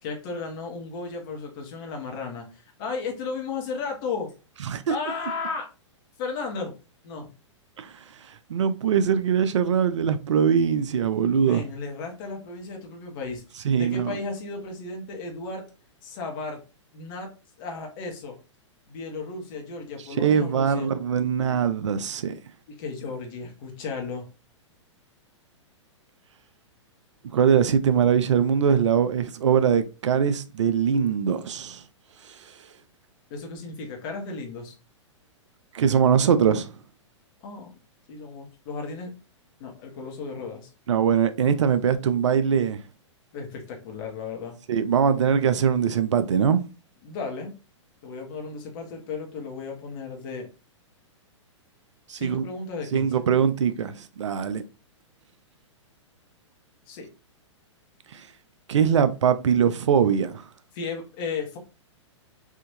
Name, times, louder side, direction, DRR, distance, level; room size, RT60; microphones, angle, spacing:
voice 1, 0.0-4.3 4.9-5.7 6.2-6.7 7.0-7.3 11.4-13.4 13.8-15.6 16.0-16.6 16.9-17.3 17.6-18.4 18.9-20.9 22.7-24.3 33.3-34.7 37.4-37.7 38.1-39.1 39.6-40.7 43.3-44.6 47.0-47.5 48.0-50.5 52.1-53.2 56.9-57.1 60.7-61.6, left 4 dB, 45° left, 1.1 m, -34 dB
voice 2, 8.5-11.6 13.6-14.2 20.2-22.4 27.3-31.8 35.7-36.7 40.9-42.8 44.7-46.6 52.1-52.4 52.9-54.6 58.7-60.4, right 7 dB, 70° right, 0.5 m, -22 dB
3.5 x 2.7 x 2.6 m
figure-of-eight pair, 110°, 16 cm